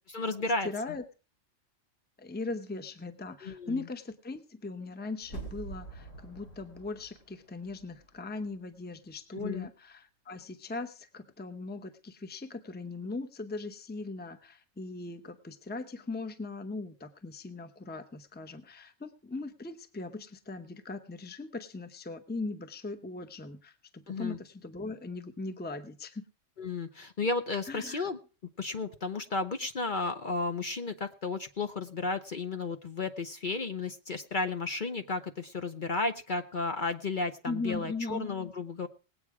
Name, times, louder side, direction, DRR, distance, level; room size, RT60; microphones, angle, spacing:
voice 1, 0.1-0.7 3.4-3.8 9.3-9.7 24.1-24.4 26.6-28.2 28.6-38.9, left 3 dB, 45° left, 7 dB, 0.9 m, -33 dB
voice 2, 0.6-1.0 2.2-26.2 27.7-28.1 37.5-38.3, left 3 dB, 10° left, 9 dB, 0.7 m, -39 dB
sound 1, 5.2-8.2 8.5-8.6, right 3 dB, 75° left, 3.3 m, -46 dB
19.0 x 8.5 x 4.8 m, 0.36 s
omnidirectional pair, 1.3 m